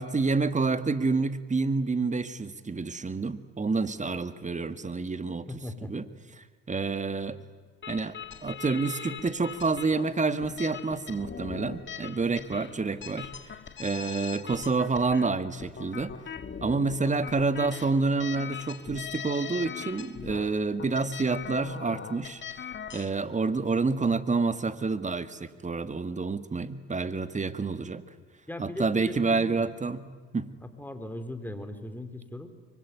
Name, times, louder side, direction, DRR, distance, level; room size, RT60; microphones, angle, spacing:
voice 1, 0.0-5.5 5.8-6.0 6.4-7.4 7.9-13.3 13.8-16.2 16.6-22.4 22.9-28.0 28.6-30.1 30.3-30.5, right 4 dB, 25° right, 12 dB, 1.8 m, -28 dB
voice 2, 5.5-5.9 28.5-29.7 30.6-32.5, left 1 dB, 5° left, 8 dB, 4.1 m, -39 dB
sound 1, 7.8-23.1, left 7 dB, 40° left, 2.0 m, -41 dB
24.5 x 24.0 x 9.6 m, 1.5 s
supercardioid pair, 65°, 30 cm